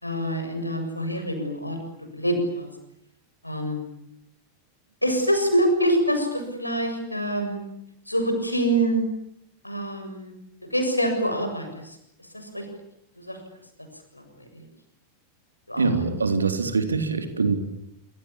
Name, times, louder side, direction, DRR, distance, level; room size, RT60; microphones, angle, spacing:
voice 1, 0.0-1.8 2.1-2.7 3.4-3.8 5.0-7.6 8.1-9.0 9.6-10.3 10.7-12.7 13.2-13.4 14.1-14.2 14.5-14.6 15.7-15.9, right 1 dB, 85° left, 5 dB, 7.1 m, -25 dB
voice 2, 15.8-17.6, right 4 dB, 75° right, 7 dB, 3.8 m, -23 dB
26.0 x 25.5 x 8.7 m, 0.78 s
figure-of-eight pair, 90°, 0 cm